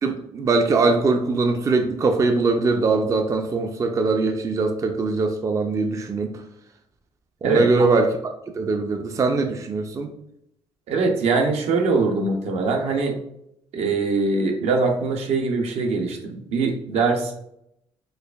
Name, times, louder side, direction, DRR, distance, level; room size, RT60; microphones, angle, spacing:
voice 1, 0.0-6.3 7.4-8.2 8.5-10.1, right 3 dB, 30° right, 5 dB, 0.4 m, -21 dB
voice 2, 7.4-7.9 10.9-13.2 13.7-17.5, right 3 dB, 70° right, 3 dB, 0.6 m, -22 dB
4.4 x 2.4 x 2.3 m, 0.78 s
cardioid pair, 90°, 11 cm